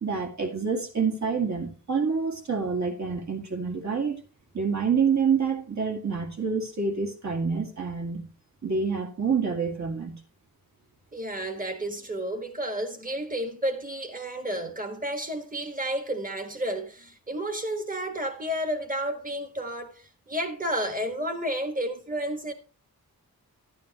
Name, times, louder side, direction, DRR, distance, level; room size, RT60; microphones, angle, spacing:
voice 1, 0.0-4.2 4.5-8.3 8.6-10.2, right 5 dB, 50° right, 1.8 m, -27 dB
voice 2, 11.1-22.5, right 1 dB, 25° right, 1.4 m, -31 dB
11.5 x 9.2 x 2.9 m
wide cardioid pair, 105°, 36 cm